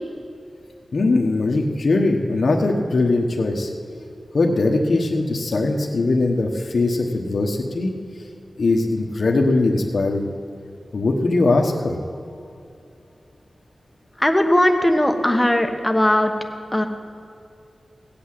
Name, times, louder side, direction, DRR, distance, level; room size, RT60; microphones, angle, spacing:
voice 1, 0.9-7.9 8.6-10.3 10.9-12.0, left 2 dB, 70° left, 2 dB, 1.2 m, -21 dB
voice 2, 14.2-16.3 16.7-16.9, left 1 dB, 10° left, 5 dB, 1.2 m, -18 dB
16.5 x 8.6 x 7.5 m, 2.5 s
wide cardioid pair, 95°, 0 cm